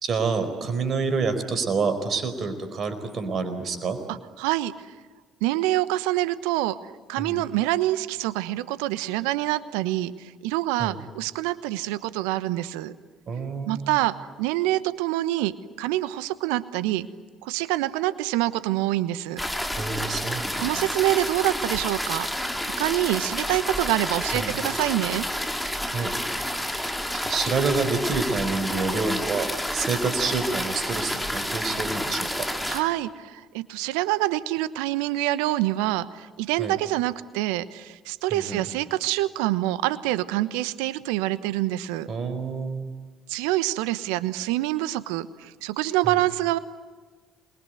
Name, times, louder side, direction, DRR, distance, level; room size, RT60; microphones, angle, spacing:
voice 1, 0.0-4.0 7.2-7.4 10.8-11.0 13.3-14.0 19.7-20.8 24.3-24.5 25.9-26.1 27.1-32.5 36.6-36.8 38.3-38.6 42.1-42.9 46.0-46.2, right 4 dB, 50° right, 9 dB, 4.6 m, -28 dB
voice 2, 4.4-4.9 5.4-6.7 7.1-12.9 13.7-15.5 15.8-17.1 17.4-19.4 20.6-22.3 22.6-25.2 32.7-42.1 43.3-46.6, right 16 dB, 75° right, 16 dB, 1.1 m, -26 dB
sound 1, 19.4-32.8, equal, 5° left, 4.2 m, -29 dB
28.0 x 22.0 x 9.3 m, 1.4 s
hypercardioid pair, 50°, 0 cm